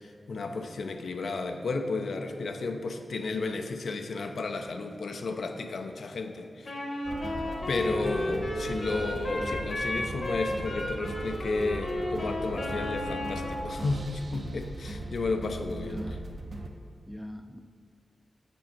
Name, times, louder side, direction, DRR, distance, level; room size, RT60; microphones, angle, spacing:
voice 1, 0.3-6.7 7.7-16.0, left 3 dB, 80° left, 6 dB, 0.5 m, -33 dB
Wind instrument woodwind instrument, 6.6-13.6, left 1 dB, 50° left, 0.9 m, -34 dB
sound 1, 7.0-16.7, right 1 dB, 50° right, 0.5 m, -38 dB
voice 2, 8.0-8.5 15.8-16.3 17.1-17.6, equal, ahead, 7 dB, 0.3 m, -41 dB
6.3 x 5.1 x 4.3 m, 2.3 s
wide cardioid pair, 110°, 0 cm